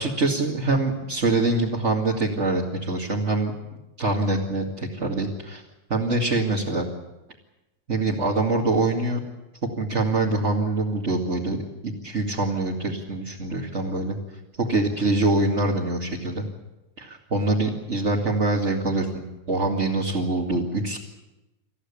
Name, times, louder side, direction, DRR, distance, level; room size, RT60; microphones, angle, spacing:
voice 1, 0.0-3.5 4.0-5.6 5.9-6.9 7.9-9.2 9.6-11.6 11.8-14.2 14.6-16.4 17.0-21.0, right 2 dB, 25° right, -3 dB, 2.4 m, -24 dB
28.0 x 14.5 x 8.5 m, 0.98 s
omnidirectional pair, 3.3 m